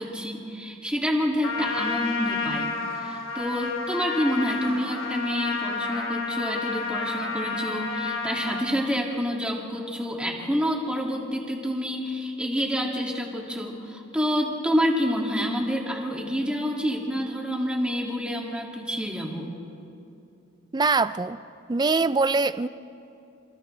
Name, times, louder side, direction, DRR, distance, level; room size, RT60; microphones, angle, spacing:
voice 1, 0.0-19.5, equal, 5° right, 2.4 m, -28 dB
Trumpet, 1.4-8.7, left 4 dB, 70° left, 2.7 m, -30 dB
voice 2, 20.7-21.4 21.7-22.7, right 3 dB, 20° right, 0.4 m, -23 dB
28.0 x 27.5 x 3.4 m
head